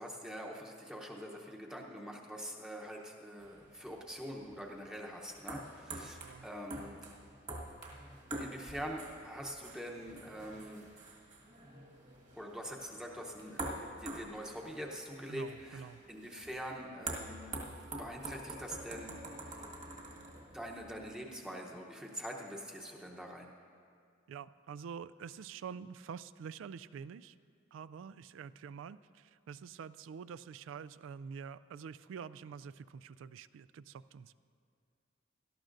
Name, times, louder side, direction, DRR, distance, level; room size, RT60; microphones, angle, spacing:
voice 1, 0.0-7.0 7.5-7.8 8.4-10.9 12.4-19.6 20.1-23.5, equal, 5° right, -1 dB, 0.8 m, -45 dB
sound 1, 3.4-21.2, right 2 dB, 40° right, 1.6 m, -47 dB
voice 2, 6.1-6.5 15.3-16.0 24.3-27.4 27.7-34.3, right 6 dB, 85° right, 17 dB, 0.3 m, -47 dB
18.0 x 13.0 x 2.6 m, 2.2 s
head